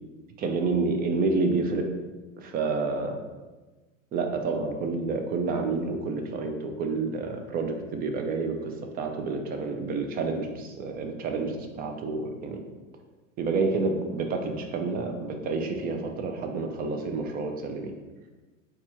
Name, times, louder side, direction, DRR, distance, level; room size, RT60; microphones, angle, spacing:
voice 1, 0.4-1.9 2.4-3.2 4.1-12.6 13.4-17.9, right 3 dB, 25° right, 4 dB, 0.3 m, -29 dB
3.9 x 2.4 x 2.9 m, 1.2 s
hypercardioid pair, 105°, 40 cm